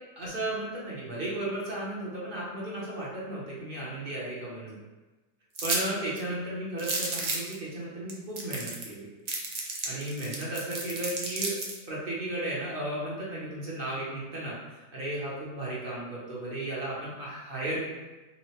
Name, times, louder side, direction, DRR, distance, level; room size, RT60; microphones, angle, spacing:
voice 1, 0.2-4.8 5.6-9.1 9.9-11.6 11.9-17.8, right 1 dB, 40° right, -6 dB, 1.1 m, -34 dB
sound 1, 5.6-5.8 6.2-6.3 6.8-7.5 8.1-8.2 8.4-8.9 9.3-11.8, right 3 dB, 80° right, 0.3 m, -32 dB
5.6 x 2.4 x 3.0 m, 1.2 s
omnidirectional pair, 1.6 m